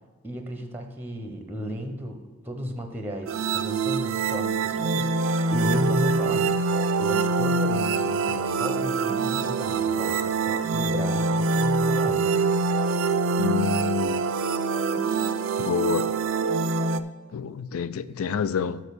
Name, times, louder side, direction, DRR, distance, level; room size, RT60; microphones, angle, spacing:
voice 1, 0.2-2.2 2.4-6.5 7.0-12.2, equal, 10° right, 0.7 m, -34 dB
sound 1, 3.3-17.0, right 3 dB, 65° right, 0.4 m, -24 dB
voice 2, 13.4-14.2 15.6-16.1 17.3-18.8, left 6 dB, 75° left, 0.4 m, -28 dB
6.5 x 6.1 x 6.7 m
head